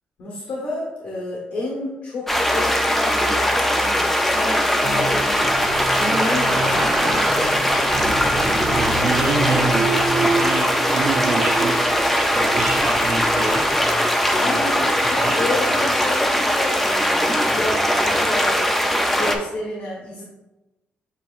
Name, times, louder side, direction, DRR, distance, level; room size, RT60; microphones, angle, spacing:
voice 1, 0.2-5.4 5.9-7.9 14.3-18.6 19.1-20.2, left 2 dB, 70° left, -4 dB, 1.2 m, -30 dB
sound 1, 2.3-19.4, equal, 5° left, 0.4 m, -20 dB
sound 2, 4.8-16.2 16.6-16.7, right 3 dB, 45° right, 0.7 m, -28 dB
voice 2, 8.7-11.8 12.1-13.7 14.4-14.6 15.2-15.4, right 3 dB, 75° right, -4 dB, 0.7 m, -27 dB
7.5 x 2.8 x 2.5 m, 1.0 s
cardioid pair, 165°, 3 cm